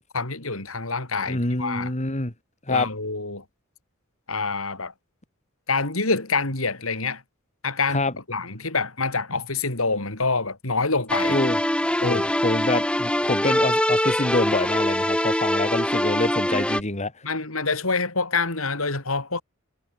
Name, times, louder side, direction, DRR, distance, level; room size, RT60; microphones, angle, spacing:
voice 1, 0.1-1.9 2.7-3.4 4.3-4.9 5.7-7.2 7.6-11.4 12.0-12.3 17.2-19.4, left 4 dB, 80° left, 4.4 m, -26 dB
voice 2, 1.3-2.3 2.7-2.9 7.9-8.1 11.3-11.6 12.0-17.1, left 2 dB, 35° left, 2.9 m, -26 dB
sound 1, 11.1-16.8, left 1 dB, 5° left, 2.0 m, -23 dB
head